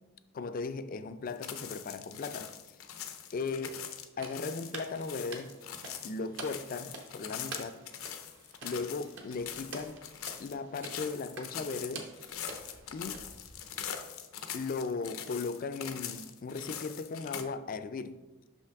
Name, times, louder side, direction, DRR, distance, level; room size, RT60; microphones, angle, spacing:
voice 1, 0.3-2.5 3.3-3.8 4.2-5.5 6.0-7.8 8.6-10.0 10.4-12.4 12.9-13.3 14.5-18.2, left 4 dB, 40° left, 0.3 m, -37 dB
sound 1, 1.3-17.4, left 9 dB, 85° left, 0.6 m, -43 dB
sound 2, 4.1-13.9, right 3 dB, 60° right, 0.9 m, -48 dB
5.8 x 5.6 x 3.5 m
head